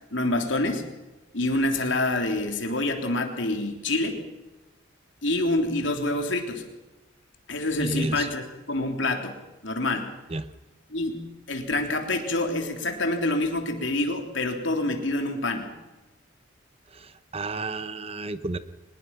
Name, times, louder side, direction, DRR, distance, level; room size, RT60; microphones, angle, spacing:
voice 1, 0.1-0.8 1.3-4.2 5.2-6.6 7.5-9.4 9.6-10.1 10.9-15.7, left 2 dB, 65° left, 4 dB, 3.3 m, -27 dB
voice 2, 7.8-8.3 10.3-10.5 16.9-18.6, right 2 dB, 30° right, 13 dB, 0.8 m, -31 dB
23.5 x 20.5 x 5.9 m, 1.1 s
head